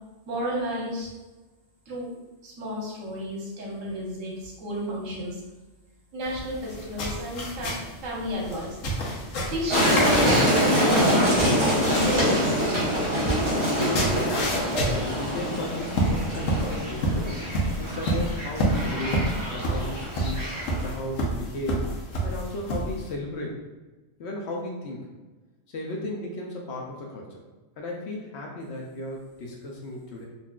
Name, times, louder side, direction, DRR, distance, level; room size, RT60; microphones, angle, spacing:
voice 1, 0.3-1.1 1.9-2.1 2.4-5.4 6.1-8.8 9.5-11.2 11.8-12.7, equal, 80° right, -3 dB, 1.2 m, -31 dB
sound 1, 6.2-23.1, right 1 dB, 85° left, 1.1 m, -30 dB
sound 2, 9.7-20.9, equal, 25° right, 1.2 m, -25 dB
voice 2, 13.5-14.5 14.9-17.5 17.8-20.4 20.8-23.6 24.2-25.1 25.7-27.4 27.8-30.3, left 1 dB, 65° left, -1 dB, 0.8 m, -35 dB
3.9 x 2.5 x 2.3 m, 1.2 s
omnidirectional pair, 1.3 m